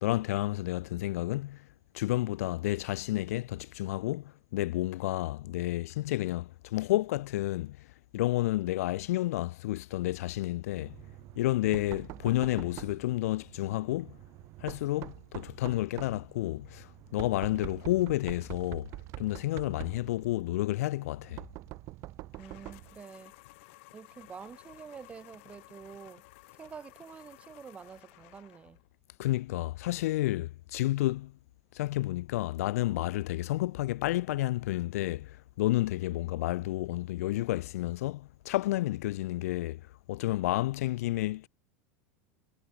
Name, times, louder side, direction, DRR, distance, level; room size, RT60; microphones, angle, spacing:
voice 1, 0.0-1.6 1.9-7.8 8.1-11.0 11.4-14.1 14.6-18.9 19.2-21.4 29.2-31.3 31.7-39.8 40.1-41.5, left 17 dB, 80° left, 0.5 m, -30 dB
Knock, 10.8-23.0, right 19 dB, 35° right, 2.5 m, -46 dB
voice 2, 17.5-17.8 22.3-23.3 23.9-26.2 26.6-28.8, right 6 dB, 15° right, 1.5 m, -48 dB
sound 1, 22.3-28.9, left 24 dB, 55° left, 2.9 m, -55 dB
supercardioid pair, 165°, 8 cm